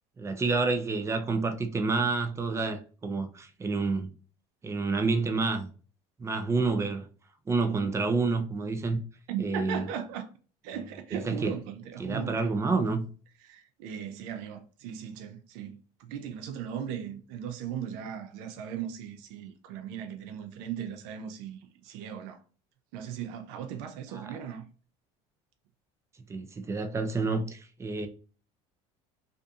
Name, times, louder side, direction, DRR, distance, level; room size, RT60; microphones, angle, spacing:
voice 1, 0.2-4.1 4.6-5.7 6.2-7.1 7.5-9.0 9.4-9.9 11.1-11.5 12.0-13.1 24.1-24.4 26.3-28.1, right 3 dB, 20° right, 0.5 m, -29 dB
voice 2, 9.3-10.3 10.6-12.6 13.4-21.6 21.8-22.4 22.9-24.7, right 8 dB, 80° right, 0.4 m, -38 dB
2.6 x 2.5 x 2.3 m
supercardioid pair, 110°, 14 cm